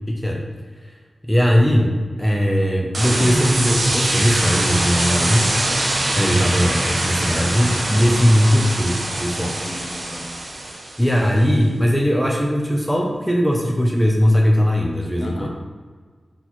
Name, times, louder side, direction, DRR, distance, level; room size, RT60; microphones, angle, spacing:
voice 1, 0.1-0.4 1.2-5.5 6.1-9.7 11.0-15.5, equal, ahead, -1 dB, 0.5 m, -19 dB
sound 1, 2.9-11.2, right 1 dB, 60° right, 0.7 m, -23 dB
voice 2, 9.5-10.3 15.2-15.5, left 2 dB, 45° left, 0 dB, 0.8 m, -35 dB
4.0 x 3.9 x 3.0 m, 1.5 s
wide cardioid pair, 100°, 0 cm